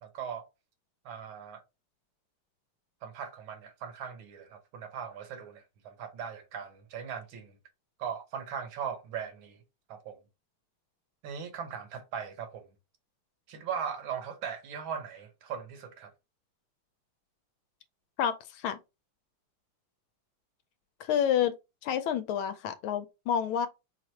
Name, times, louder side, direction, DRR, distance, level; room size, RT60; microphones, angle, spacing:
voice 1, 0.0-0.5 1.1-1.6 3.0-7.6 8.0-9.6 9.9-10.2 11.2-12.7 13.5-16.1, right 7 dB, 75° right, 1.7 m, -39 dB
voice 2, 18.2-18.8 21.0-21.6 21.8-23.7, left 9 dB, 80° left, 1.4 m, -29 dB
4.6 x 2.5 x 4.3 m
omnidirectional pair, 2.3 m